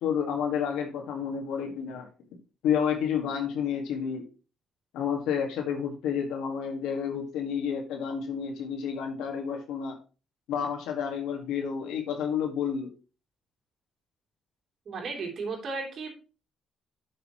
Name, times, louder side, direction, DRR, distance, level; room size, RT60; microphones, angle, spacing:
voice 1, 0.0-2.1 2.6-4.2 4.9-10.0 10.5-12.9, left 7 dB, 90° left, 3 dB, 1.9 m, -30 dB
voice 2, 14.8-16.1, right 4 dB, 60° right, 0 dB, 3.4 m, -34 dB
11.0 x 6.6 x 3.1 m, 0.33 s
cardioid pair, 90°, 0 cm